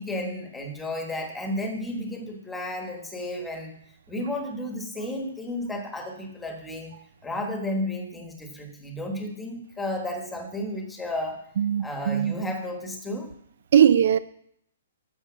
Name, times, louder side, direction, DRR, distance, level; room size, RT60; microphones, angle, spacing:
voice 1, 0.0-3.7 4.1-6.9 7.2-11.4 11.8-13.3, left 1 dB, 5° left, 1.4 m, -32 dB
voice 2, 11.6-12.3 13.7-14.2, right 9 dB, 55° right, 0.4 m, -19 dB
12.0 x 7.0 x 6.2 m
hypercardioid pair, 170°, 0 cm